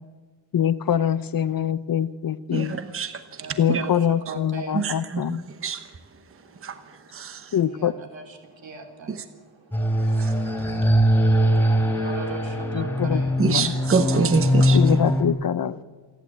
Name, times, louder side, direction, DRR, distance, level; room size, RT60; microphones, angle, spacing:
voice 1, 0.5-2.8 3.6-5.4 7.5-7.9 12.7-13.8 14.7-15.8, left 9 dB, 50° left, 15 dB, 0.6 m, -24 dB
voice 2, 2.5-3.1 3.7-3.8 4.7-5.4 5.6-5.8 6.6-6.7 7.1-7.5 9.1-9.2 10.2-10.3 13.4-14.8, right 5 dB, 30° right, 9 dB, 1.0 m, -25 dB
voice 3, 3.4-4.9 7.6-8.4 8.6-9.2 11.8-13.3, right 3 dB, 75° right, 3 dB, 3.7 m, -38 dB
sound 1, 9.7-15.3, equal, 5° left, 3.2 m, -21 dB
27.5 x 11.0 x 8.4 m, 1.5 s
wide cardioid pair, 165°, 46 cm